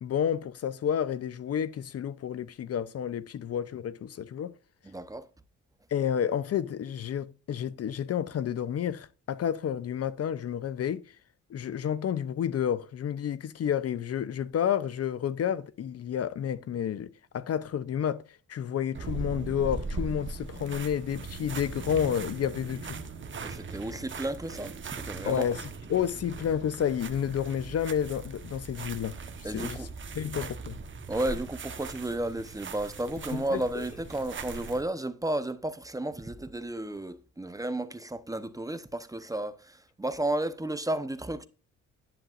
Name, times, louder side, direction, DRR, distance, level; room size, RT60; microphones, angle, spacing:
voice 1, 0.0-4.5 5.9-11.2 11.5-23.0 25.2-29.9 30.1-30.8 33.3-33.8, left 9 dB, 50° left, 0.7 m, -30 dB
voice 2, 4.8-5.3 23.4-25.4 29.4-29.9 31.1-41.5, right 1 dB, 10° right, 0.9 m, -33 dB
sound 1, 18.9-34.8, right 4 dB, 40° right, 1.2 m, -40 dB
10.5 x 10.0 x 2.5 m
cardioid pair, 95°, 31 cm